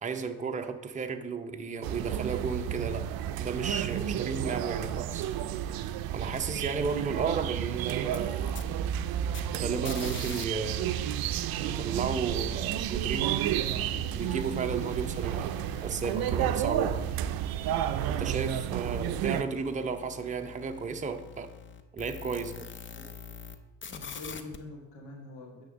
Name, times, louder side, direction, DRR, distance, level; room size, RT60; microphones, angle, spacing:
voice 1, 0.0-3.0 3.4-5.3 6.1-8.4 9.5-10.9 11.6-13.4 14.1-15.6 15.8-17.0 18.1-21.5 21.9-22.7, right 5 dB, 20° right, 5 dB, 0.7 m, -33 dB
sound 1, 1.8-19.4, right 11 dB, 60° right, 0.5 m, -31 dB
sound 2, 8.0-10.4 10.7-23.6 23.8-24.6, left 7 dB, 30° left, 0.7 m, -46 dB
voice 2, 23.9-25.6, left 2 dB, 65° left, -1 dB, 1.7 m, -44 dB
9.1 x 3.6 x 6.3 m, 1.0 s
supercardioid pair, 75°, 41 cm